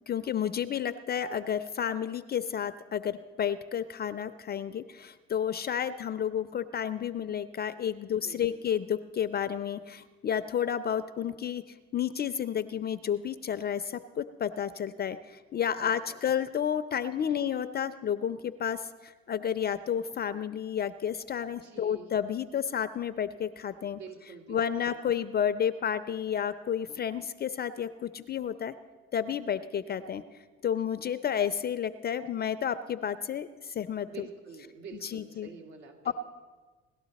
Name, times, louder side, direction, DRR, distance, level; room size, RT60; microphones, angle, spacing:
voice 1, 0.1-11.6 11.9-24.0 24.5-28.7 29.1-30.2 30.6-34.3 35.0-35.5 36.0-36.1, left 8 dB, 35° left, 12 dB, 0.5 m, -31 dB
voice 2, 8.0-8.6 15.7-16.2 17.2-17.4 21.6-22.1 23.9-24.9 34.1-36.1, right 6 dB, 70° right, 1 dB, 2.5 m, -48 dB
18.0 x 12.0 x 4.1 m, 1.4 s
supercardioid pair, 85°, 30 cm